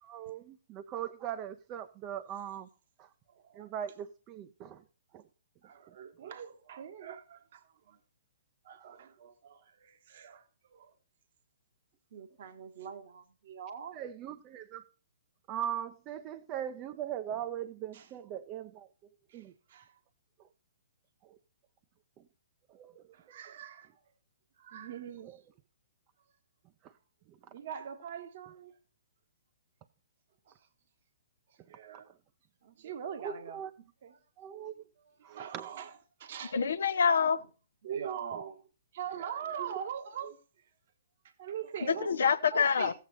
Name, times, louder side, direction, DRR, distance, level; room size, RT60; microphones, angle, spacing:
voice 1, 0.0-2.7 3.0-3.1 3.6-4.8 5.1-5.2 13.9-14.8 15.5-18.9 19.3-19.5 21.3-21.4 22.7-23.0 25.2-25.4 26.8-26.9 33.2-33.7 34.4-34.8 35.2-35.7 39.6-39.7, right 10 dB, 30° right, 0.7 m, -40 dB
voice 2, 3.3-3.7 5.6-8.0 8.6-10.9 12.1-14.0 17.9-18.1 19.3-19.4 19.7-19.9 23.1-24.0 24.6-25.4 27.5-28.7 31.7-32.1 32.6-33.6 34.0-34.2 35.0-35.9 36.2-36.6 37.8-38.7 38.9-40.4 41.4-42.1 42.5-42.9, right 8 dB, 50° right, 1.3 m, -42 dB
voice 3, 36.5-37.4 41.9-42.9, left 6 dB, 65° left, 0.8 m, -26 dB
14.5 x 8.4 x 4.1 m
figure-of-eight pair, 125°, 0 cm